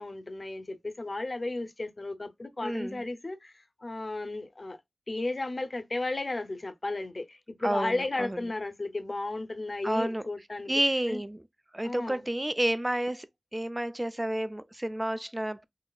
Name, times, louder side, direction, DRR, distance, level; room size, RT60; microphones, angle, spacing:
voice 1, 0.0-4.8 5.1-10.8 11.1-11.2 11.8-12.2, left 2 dB, 45° left, 0.7 m, -34 dB
voice 2, 2.6-3.0 7.6-8.4 9.8-10.2 10.7-11.4 11.7-13.3 13.5-15.6, right 1 dB, 20° right, 0.4 m, -30 dB
4.0 x 2.8 x 2.3 m
wide cardioid pair, 65°, 0 cm